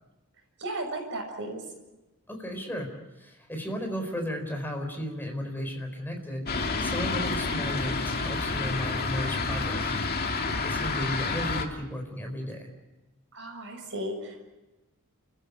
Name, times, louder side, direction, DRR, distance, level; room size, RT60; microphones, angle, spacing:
voice 1, 0.6-1.6 13.3-14.4, right 1 dB, 55° right, 2 dB, 6.6 m, -35 dB
voice 2, 2.3-2.9 3.2-6.5 6.8-10.0 10.6-12.7, equal, 10° left, 3 dB, 4.3 m, -34 dB
Fixed-wing aircraft airplane, 6.5-11.6, left 3 dB, 45° left, 2.0 m, -29 dB
29.5 x 15.0 x 8.3 m, 1.0 s
head